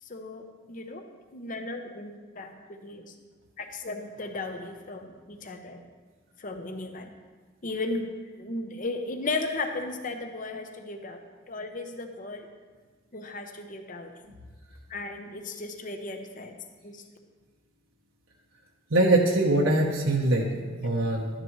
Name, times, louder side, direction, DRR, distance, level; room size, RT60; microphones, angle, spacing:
voice 1, 0.1-1.0 1.3-3.1 3.6-5.8 6.4-7.2 7.6-12.5 13.1-14.1 14.9-16.6 16.8-17.0, left 2 dB, 40° left, 6 dB, 0.8 m, -36 dB
voice 2, 18.9-21.3, right 1 dB, 90° right, -1 dB, 0.9 m, -23 dB
12.0 x 10.0 x 3.1 m, 1.4 s
head